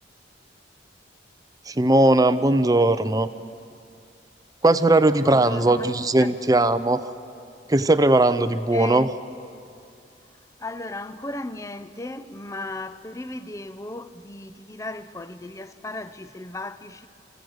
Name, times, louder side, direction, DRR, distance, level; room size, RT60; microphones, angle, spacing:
voice 1, 1.7-3.3 4.6-7.1 7.7-9.1, right 2 dB, 20° right, 0.6 m, -19 dB
voice 2, 5.2-6.3 8.7-9.1 10.6-17.1, left 2 dB, 15° left, 0.6 m, -36 dB
27.0 x 15.5 x 7.9 m
head